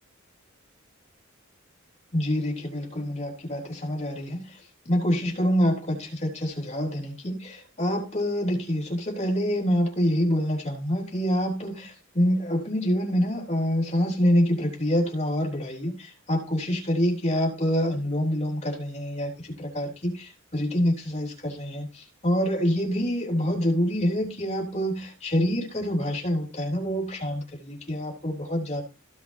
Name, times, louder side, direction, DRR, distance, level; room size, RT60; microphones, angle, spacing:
voice 1, 2.1-4.6 4.9-28.8, equal, 35° left, 0 dB, 3.6 m, -26 dB
16.0 x 6.2 x 2.8 m, 0.31 s
head